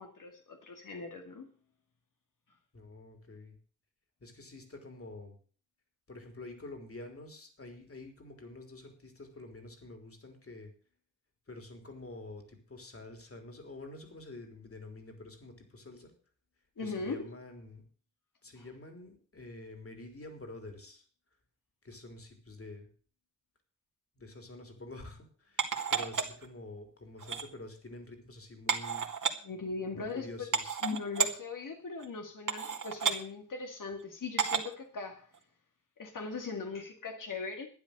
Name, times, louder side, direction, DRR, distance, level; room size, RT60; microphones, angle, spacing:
voice 1, 0.0-1.5 16.8-17.2 18.6-18.7 29.4-30.5 30.8-35.3 36.0-37.7, left 4 dB, 85° left, 2.1 m, -39 dB
voice 2, 2.7-3.6 4.2-5.4 6.1-10.7 11.5-16.1 16.8-17.8 18.4-21.0 21.8-22.9 24.2-29.1 29.9-30.8, left 2 dB, 45° left, 3.7 m, -48 dB
sound 1, 25.6-26.5 27.2-27.4 28.7-29.3 30.1-30.2 30.5-31.3 32.0-32.1 32.5-33.2 34.4-34.7 35.3-35.4, right 6 dB, 75° right, 2.3 m, -31 dB
12.0 x 10.5 x 6.6 m
wide cardioid pair, 115°, 31 cm